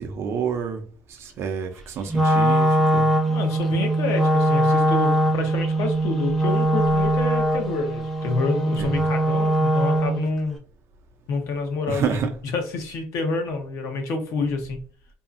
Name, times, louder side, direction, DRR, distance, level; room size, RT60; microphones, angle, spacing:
voice 1, 0.0-3.1 8.8-8.9 11.9-12.3, right 7 dB, 50° right, 0.5 m, -29 dB
Wind instrument woodwind instrument, 2.1-10.3, right 1 dB, 5° left, 0.7 m, -21 dB
voice 2, 3.3-10.6 11.3-12.2 12.5-14.8, left 3 dB, 65° left, 0.7 m, -28 dB
2.7 x 2.3 x 2.5 m
cardioid pair, 120°, 6 cm